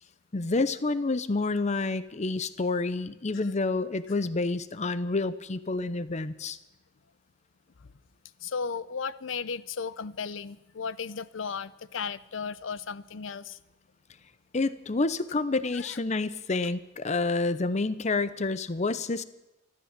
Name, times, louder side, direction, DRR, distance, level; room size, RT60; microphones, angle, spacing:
voice 1, 0.3-6.6 14.5-19.2, left 3 dB, 35° left, 15 dB, 0.7 m, -28 dB
voice 2, 8.4-13.6 15.7-16.0, left 5 dB, 85° left, 18 dB, 0.6 m, -35 dB
13.5 x 13.5 x 7.4 m, 0.95 s
head